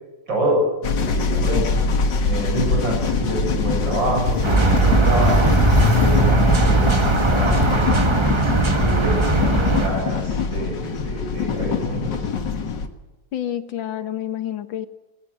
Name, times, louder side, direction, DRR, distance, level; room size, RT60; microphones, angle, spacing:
voice 1, 0.3-0.7 1.1-12.3, equal, 80° right, 0 dB, 7.5 m, -27 dB
sound 1, 0.8-12.9, left 4 dB, 70° left, 2.3 m, -24 dB
Walk footsteps, 2.8-10.0, left 2 dB, 10° left, 3.0 m, -26 dB
sound 2, 4.4-9.9, right 3 dB, 20° right, 1.1 m, -19 dB
voice 2, 13.3-14.9, left 11 dB, 90° left, 11 dB, 2.0 m, -28 dB
19.0 x 16.0 x 9.3 m, 1.1 s
omnidirectional pair, 2.0 m